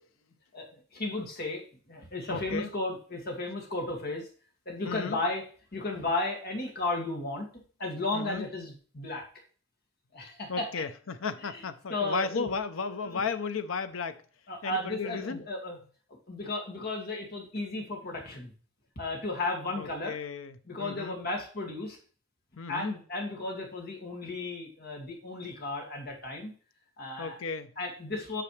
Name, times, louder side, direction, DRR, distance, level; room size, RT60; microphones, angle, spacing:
voice 1, 0.9-4.3 4.7-5.4 5.7-7.5 7.8-9.3 10.1-10.8 11.4-11.6 11.9-12.5 13.1-13.2 14.5-15.8 16.3-18.5 19.0-20.2 20.7-22.0 22.7-26.5 27.0-27.4 27.8-28.4, left 2 dB, 50° left, 2.2 m, -34 dB
voice 2, 2.3-2.7 4.8-5.2 8.1-8.5 10.5-14.2 14.6-15.4 19.8-21.2 22.6-22.9 27.2-27.7, left 5 dB, 80° left, 0.6 m, -34 dB
8.7 x 6.0 x 3.2 m
head